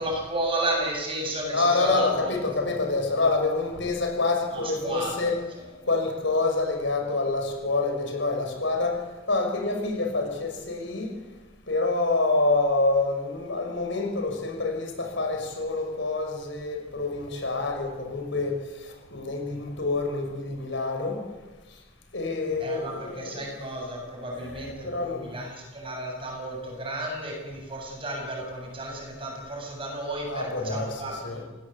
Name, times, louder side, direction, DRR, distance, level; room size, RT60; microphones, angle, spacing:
voice 1, 0.0-2.4 4.5-5.3 5.6-5.7 22.6-31.4, right 1 dB, 25° right, 0 dB, 7.8 m, -33 dB
voice 2, 1.5-5.3 5.9-9.0 9.3-11.1 11.7-21.2 22.1-23.4 24.3-25.3 30.3-31.4, left 3 dB, 65° left, 2 dB, 5.8 m, -27 dB
29.0 x 18.0 x 8.4 m, 1.2 s
head